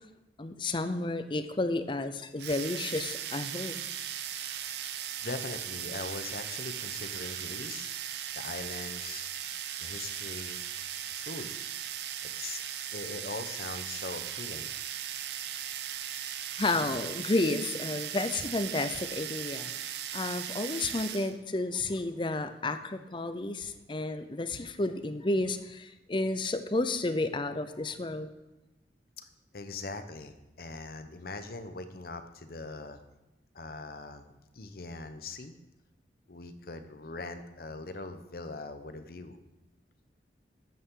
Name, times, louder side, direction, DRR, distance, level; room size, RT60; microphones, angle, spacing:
voice 1, 0.4-3.8 16.6-19.7 20.1-28.3, left 2 dB, 25° left, 10 dB, 0.6 m, -31 dB
sound 1, 2.4-21.4, right 10 dB, 70° right, 0.7 m, -38 dB
voice 2, 4.4-4.9 5.2-7.9 8.3-9.2 9.8-10.6 11.1-11.5 12.2-12.6 12.9-14.7 29.2-29.3 29.5-33.0 33.5-35.5 36.3-39.4, left 3 dB, 55° left, 9 dB, 0.8 m, -41 dB
12.5 x 8.5 x 3.8 m, 0.98 s
head